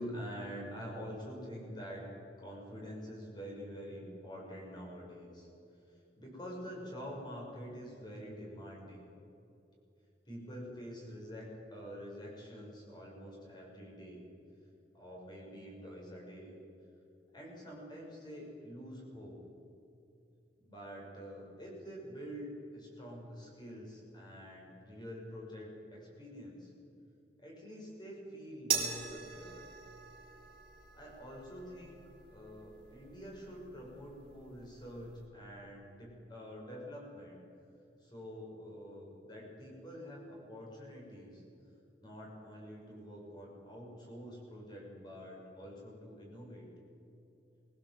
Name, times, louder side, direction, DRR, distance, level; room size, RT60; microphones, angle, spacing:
voice 1, 0.0-2.0 2.4-5.5 6.2-9.0 10.2-14.2 14.9-16.5 17.3-19.4 20.6-26.7 27.4-29.6 31.0-32.0 32.3-37.4 38.0-41.4 42.0-46.7, equal, 25° left, -2 dB, 6.6 m, -46 dB
sound 1, 28.7-35.3, right 6 dB, 30° right, 3.4 m, -42 dB
22.0 x 18.0 x 7.9 m, 2.8 s
head